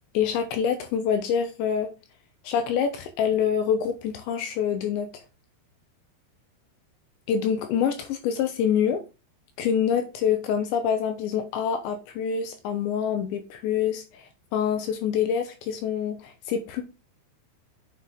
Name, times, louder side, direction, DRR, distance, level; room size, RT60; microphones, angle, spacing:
voice 1, 0.1-1.9 2.4-5.2 7.3-9.0 9.6-14.0 14.5-16.8, left 8 dB, 75° left, 2.9 m, -26 dB
7.7 x 7.3 x 3.6 m
omnidirectional pair, 5.9 m